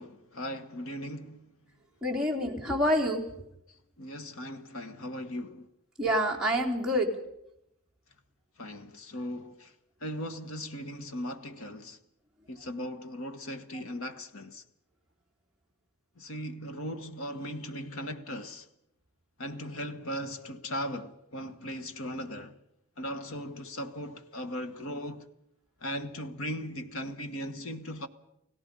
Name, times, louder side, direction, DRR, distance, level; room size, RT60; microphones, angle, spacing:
voice 1, 0.0-1.5 4.0-5.7 8.6-9.7 10.0-12.0 12.5-14.6 16.2-18.7 19.4-22.6 23.0-25.3 25.8-28.1, equal, 75° left, 1.6 m, -38 dB
voice 2, 2.0-3.2 6.0-7.1, equal, 5° right, 3.4 m, -27 dB
30.0 x 17.0 x 5.5 m
head